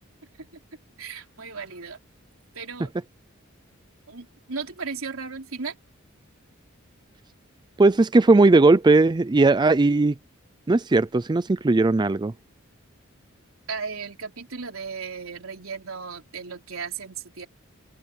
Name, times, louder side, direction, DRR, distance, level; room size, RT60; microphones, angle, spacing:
voice 1, 1.0-2.0 2.5-2.9 4.1-5.8 13.7-17.5, right 5 dB, 80° right, 3.6 m, -35 dB
voice 2, 7.8-10.1 10.7-12.3, right 3 dB, 20° right, 0.4 m, -18 dB
head